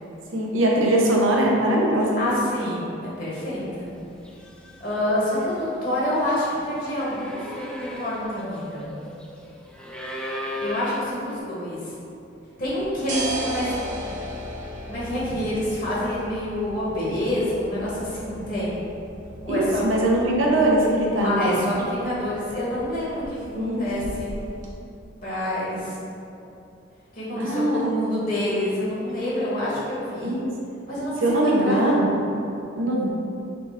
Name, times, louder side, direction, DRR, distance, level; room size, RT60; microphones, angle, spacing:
voice 1, 0.3-2.3 19.5-21.6 23.6-23.8 27.4-27.8 30.2-30.5 31.2-32.1 32.8-33.1, right 1 dB, 90° right, -2 dB, 0.7 m, -21 dB
voice 2, 2.2-3.9 4.8-9.0 10.6-11.9 12.6-14.1 14.9-18.8 19.4-19.9 21.2-24.3 25.2-26.0 27.1-30.3 30.9-32.0, left 1 dB, 45° left, -8 dB, 1.1 m, -27 dB
sound 1, 3.8-4.0 4.2-11.4, left 1 dB, 5° left, 0.3 m, -37 dB
sound 2, 12.6-24.7, right 1 dB, 40° right, 0.6 m, -37 dB
4.0 x 3.3 x 3.4 m, 2.7 s
head